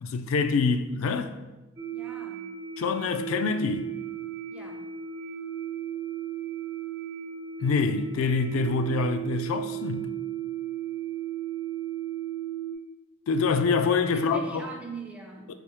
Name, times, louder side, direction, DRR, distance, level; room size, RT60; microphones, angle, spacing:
voice 1, 0.0-1.3 2.8-3.9 7.6-10.1 13.3-14.7 15.5-15.6, left 4 dB, 85° left, 0.3 m, -26 dB
sound 1, 1.8-12.7, right 10 dB, 55° right, 0.9 m, -35 dB
voice 2, 1.9-2.5 4.5-4.9 14.1-15.5, right 3 dB, 5° right, 0.5 m, -42 dB
4.5 x 3.4 x 3.0 m
head